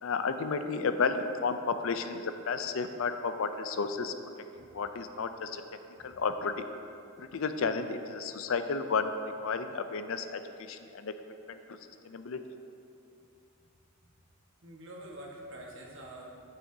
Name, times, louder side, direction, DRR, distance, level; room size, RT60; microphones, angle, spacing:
voice 1, 0.0-4.1 4.7-5.6 6.0-6.5 7.2-9.1 9.4-11.1 11.5-11.8 12.0-12.4, left 5 dB, 65° left, 9 dB, 0.4 m, -32 dB
voice 2, 14.6-16.5, right 1 dB, 60° right, -2 dB, 1.3 m, -47 dB
10.5 x 7.5 x 2.7 m, 2.6 s
head